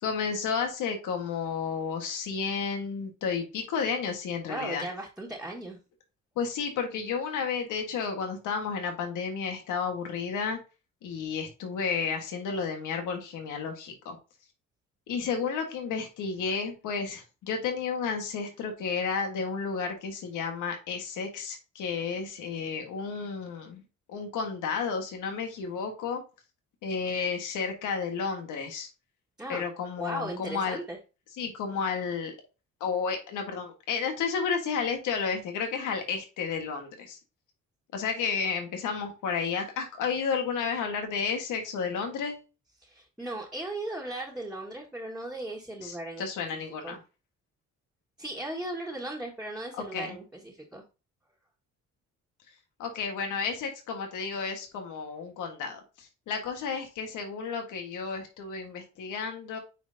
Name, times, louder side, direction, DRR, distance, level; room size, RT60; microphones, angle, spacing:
voice 1, 0.0-4.9 6.3-10.6 11.0-14.2 15.1-23.8 24.1-26.2 26.8-28.9 29.5-30.8 31.4-32.3 32.8-37.2 37.9-42.4 45.8-47.0 49.7-50.2 52.8-59.6, left 5 dB, 85° left, 4 dB, 1.5 m, -32 dB
voice 2, 4.5-5.8 29.4-29.7 30.0-31.0 42.8-46.3 46.8-47.0 48.2-50.8, right 1 dB, 5° right, -3 dB, 1.7 m, -37 dB
9.0 x 4.5 x 2.7 m, 0.32 s
cardioid pair, 90°, 30 cm